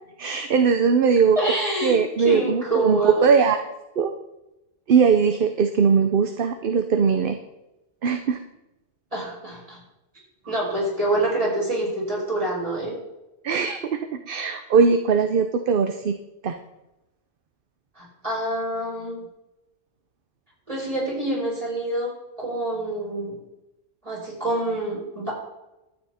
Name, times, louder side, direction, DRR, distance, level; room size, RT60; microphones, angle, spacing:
voice 1, 0.2-1.4 1.8-3.6 4.0-4.1 4.9-7.4 8.0-8.4 13.4-16.2 16.4-16.5, right 6 dB, 55° right, 7 dB, 0.8 m, -20 dB
voice 2, 1.4-3.3 9.1-9.8 10.5-13.0 18.0-19.2 20.7-22.1 22.4-23.3 24.0-25.3, right 1 dB, 30° right, -4 dB, 5.1 m, -26 dB
12.5 x 8.8 x 4.3 m, 0.96 s
omnidirectional pair, 1.2 m